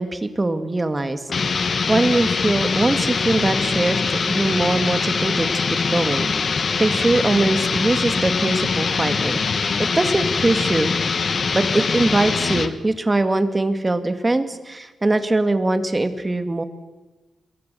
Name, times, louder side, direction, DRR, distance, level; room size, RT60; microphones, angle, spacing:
voice 1, 0.0-5.5 5.9-10.9 11.5-16.6, right 2 dB, 20° right, 9 dB, 2.1 m, -22 dB
sound 1, 1.3-12.8, left 5 dB, 50° left, 1.4 m, -23 dB
26.5 x 22.5 x 7.0 m, 1.2 s
wide cardioid pair, 105°, 0 cm